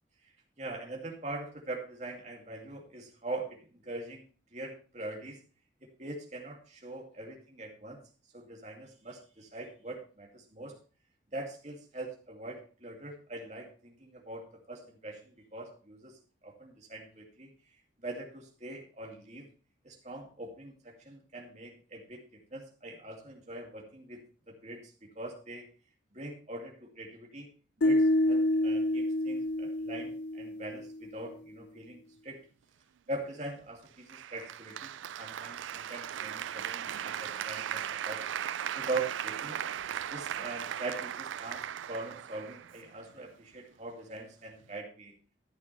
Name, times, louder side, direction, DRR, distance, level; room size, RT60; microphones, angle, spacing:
voice 1, 0.6-4.2 4.5-5.4 5.8-8.0 8.3-10.7 11.3-17.5 18.0-19.5 19.8-25.7 26.1-27.5 27.8-32.4 33.1-38.2 38.7-39.6 40.1-45.1, right 2 dB, 35° right, 1 dB, 2.5 m, -42 dB
sound 1, 27.8-31.0, left 1 dB, 65° left, 0.5 m, -28 dB
Applause, 34.1-43.1, right 9 dB, 85° right, 0.4 m, -37 dB
13.5 x 8.5 x 3.3 m, 0.36 s
head